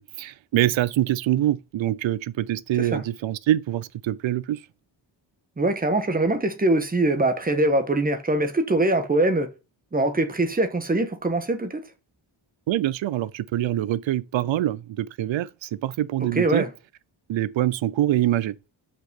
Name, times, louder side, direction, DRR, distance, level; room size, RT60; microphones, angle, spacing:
voice 1, 0.0-4.6 12.7-16.7 17.3-18.5, right 13 dB, 75° right, 0.6 m, -25 dB
voice 2, 5.6-9.5 9.9-11.8 16.3-16.7, right 2 dB, 20° right, 1.2 m, -23 dB
5.8 x 5.5 x 6.7 m
wide cardioid pair, 160°, 46 cm